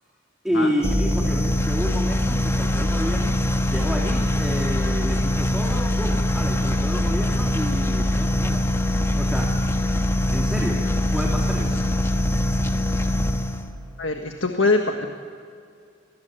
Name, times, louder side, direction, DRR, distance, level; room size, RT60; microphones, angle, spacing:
voice 1, 0.4-8.7 9.2-9.5 10.3-11.9, equal, 5° right, -2 dB, 2.8 m, -30 dB
sound 1, 0.8-13.8, left 1 dB, 15° left, 1.4 m, -23 dB
voice 2, 14.0-15.1, left 3 dB, 80° left, 4 dB, 1.6 m, -23 dB
26.5 x 20.0 x 8.2 m, 2.3 s
head